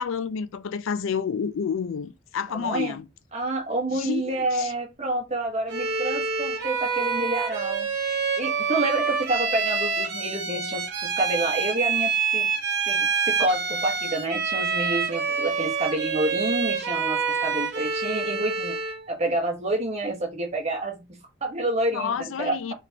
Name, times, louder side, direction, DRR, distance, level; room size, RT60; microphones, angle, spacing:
voice 1, 0.0-3.1 3.9-4.7 21.9-22.7, left 6 dB, 80° left, 0.4 m, -29 dB
voice 2, 2.5-3.0 3.3-12.5 12.9-18.8 19.1-21.0 21.4-22.7, right 2 dB, 35° right, 1.1 m, -28 dB
Bowed string instrument, 5.7-19.1, right 5 dB, 55° right, 1.0 m, -27 dB
3.9 x 3.3 x 2.8 m
head